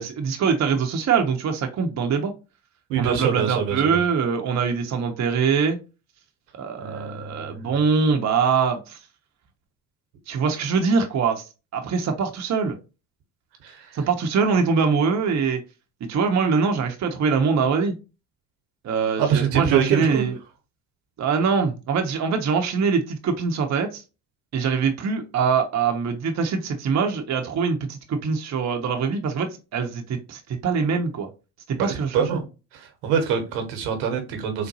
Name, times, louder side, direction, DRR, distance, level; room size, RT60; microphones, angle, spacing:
voice 1, 0.0-2.3 3.0-5.8 6.6-9.0 10.3-11.5 11.7-12.8 13.9-15.6 16.0-17.9 18.8-20.3 21.2-24.0 24.5-31.3 31.7-32.4, right 5 dB, 40° right, 0.7 m, -23 dB
voice 2, 2.9-4.0 6.8-7.7 13.6-14.0 19.2-20.2 31.7-32.4 32.7-34.7, right 7 dB, 80° right, 1.0 m, -25 dB
3.8 x 2.2 x 2.7 m
hypercardioid pair, 60°, 43 cm